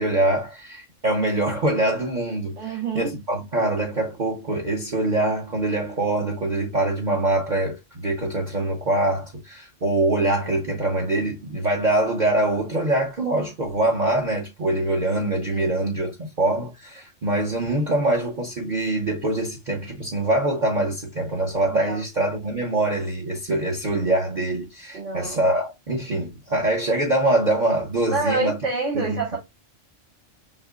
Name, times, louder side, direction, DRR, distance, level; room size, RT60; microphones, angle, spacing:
voice 1, 0.0-28.6 28.9-29.4, right 2 dB, 40° right, 0.9 m, -24 dB
voice 2, 2.6-3.1 15.6-15.7 21.8-22.0 24.9-25.4 28.1-29.4, right 3 dB, 70° right, 2.4 m, -27 dB
5.2 x 2.8 x 2.3 m
omnidirectional pair, 1.3 m